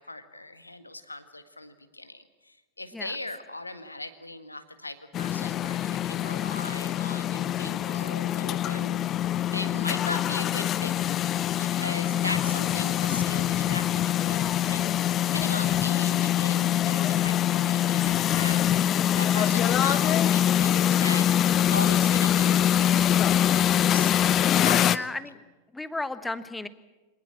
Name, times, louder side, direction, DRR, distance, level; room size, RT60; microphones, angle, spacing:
voice 1, 0.0-9.0 9.5-21.3 21.7-25.1, left 2 dB, 85° left, 10 dB, 1.8 m, -39 dB
sound 1, 5.1-25.0, left 11 dB, 30° left, 0.7 m, -24 dB
voice 2, 12.1-12.6 24.8-25.4 25.7-26.7, left 2 dB, 5° left, 13 dB, 1.3 m, -36 dB
25.5 x 19.0 x 7.6 m, 1.2 s
figure-of-eight pair, 90°, 0 cm